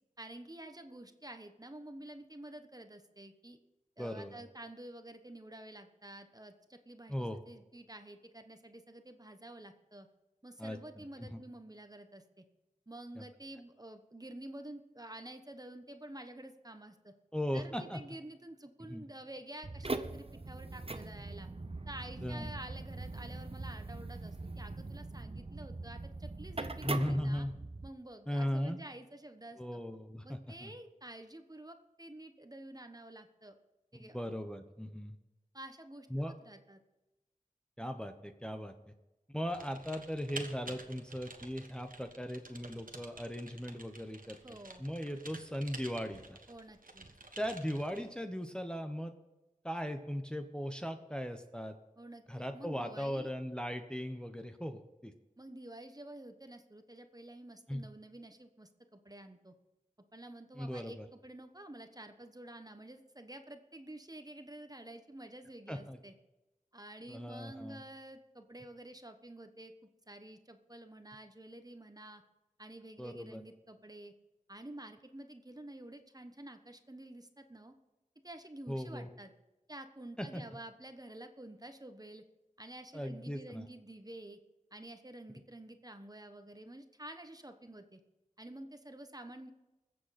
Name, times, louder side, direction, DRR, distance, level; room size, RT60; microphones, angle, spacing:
voice 1, 0.2-3.6 4.0-10.1 10.4-12.4 12.9-17.1 17.5-21.5 21.9-27.5 27.8-29.8 30.2-33.5 33.9-34.2 35.5-36.8 44.4-44.9 46.5-47.1 52.0-53.3 55.4-59.5 60.1-66.1 66.7-69.7 70.1-72.2 72.6-74.1 74.5-77.7 78.2-79.3 79.7-82.2 82.6-84.4 84.7-88.0 88.4-89.5, right 1 dB, 25° right, 7 dB, 1.1 m, -50 dB
voice 2, 4.0-4.4 7.1-7.4 10.6-11.4 13.2-13.3 17.3-18.0 18.9-19.1 22.2-22.5 26.8-27.5 28.3-28.8 29.6-30.7 33.9-35.2 36.1-36.3 37.8-38.9 39.3-44.4 44.8-46.4 47.4-49.1 49.6-51.8 52.3-55.1 57.7-57.9 60.5-61.1 65.7-66.0 67.1-67.8 73.0-73.4 78.7-79.1 80.2-80.4 82.9-83.6, equal, 5° left, 6 dB, 0.9 m, -38 dB
sound 1, 19.6-27.9, right 2 dB, 45° right, 0.8 m, -41 dB
Typing, 39.5-48.1, right 2 dB, 80° right, 1.3 m, -50 dB
21.0 x 7.7 x 4.2 m, 1.0 s
wide cardioid pair, 50°, 14 cm